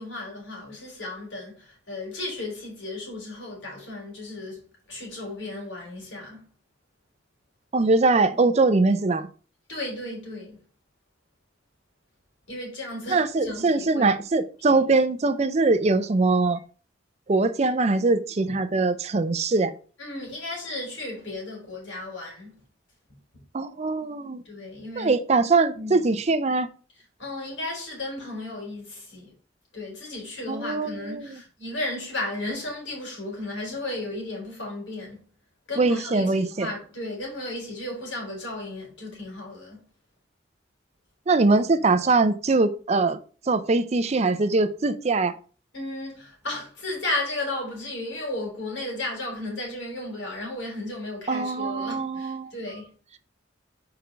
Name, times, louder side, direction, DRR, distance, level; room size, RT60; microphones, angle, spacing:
voice 1, 0.0-4.6 4.9-6.5 9.7-10.6 12.5-14.1 14.7-14.8 20.0-22.6 24.5-25.2 25.7-26.1 27.2-29.3 29.7-35.2 35.7-39.9 45.7-52.9, left 2 dB, 80° left, 3.6 m, -34 dB
voice 2, 7.7-9.3 13.1-16.6 17.3-19.7 23.5-24.4 25.0-26.7 30.5-31.4 35.8-36.7 41.3-43.2 43.5-45.3 51.3-52.5, right 3 dB, 35° right, 0.5 m, -22 dB
4.8 x 4.7 x 5.1 m
head